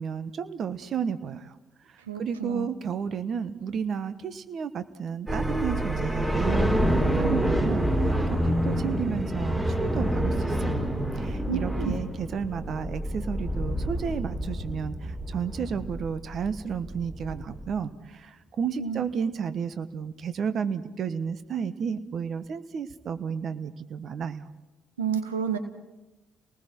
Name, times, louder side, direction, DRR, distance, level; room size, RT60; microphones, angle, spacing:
voice 1, 0.0-1.6 1.9-10.8 11.2-24.5, right 7 dB, 55° right, 12 dB, 1.2 m, -32 dB
voice 2, 2.1-2.7 11.5-12.0 18.8-19.0 25.0-25.6, right 7 dB, 90° right, 10 dB, 1.0 m, -30 dB
sound 1, 5.3-17.7, right 1 dB, 20° right, 5.4 m, -27 dB
29.5 x 19.5 x 4.5 m, 0.99 s
hypercardioid pair, 50°, 0 cm